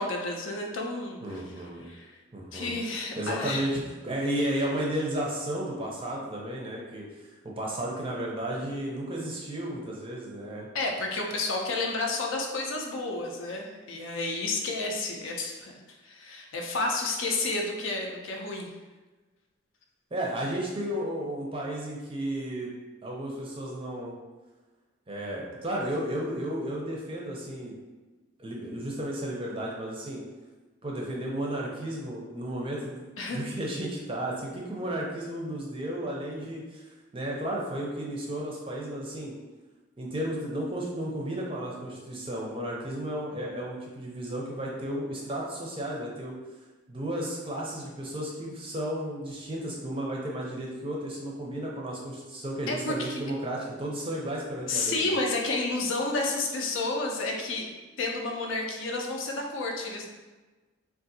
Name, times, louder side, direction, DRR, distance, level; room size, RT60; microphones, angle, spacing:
voice 1, 0.0-1.4 1.8-2.1 2.5-3.6 10.7-15.7 16.0-18.7 33.2-33.5 52.7-53.2 54.7-57.7 58.0-60.1, left 2 dB, 65° left, 1 dB, 0.5 m, -31 dB
voice 2, 1.2-1.9 2.3-2.7 3.2-7.0 7.4-10.7 20.1-22.7 23.0-24.1 25.1-27.7 28.4-30.2 30.8-33.0 33.3-36.8 37.1-39.3 40.0-46.4 46.9-55.2, right 1 dB, 25° right, -2 dB, 0.5 m, -33 dB
3.6 x 2.4 x 2.7 m, 1.2 s
head